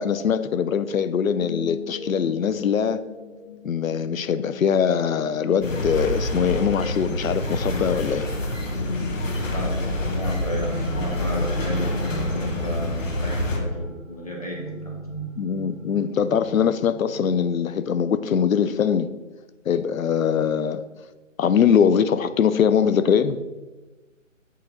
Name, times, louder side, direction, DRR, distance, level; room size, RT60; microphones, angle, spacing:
voice 1, 0.0-3.0 3.6-8.2 15.4-19.1 19.7-20.8 21.4-23.4, left 7 dB, 85° left, 13 dB, 0.6 m, -22 dB
sound 1, 1.4-17.6, left 3 dB, 55° left, 1.7 m, -36 dB
sound 2, 5.6-13.6, left 1 dB, 70° left, 1.1 m, -27 dB
voice 2, 10.1-14.9, equal, 30° left, -1 dB, 0.9 m, -33 dB
8.2 x 3.1 x 3.8 m, 1.2 s
hypercardioid pair, 170°, 40 cm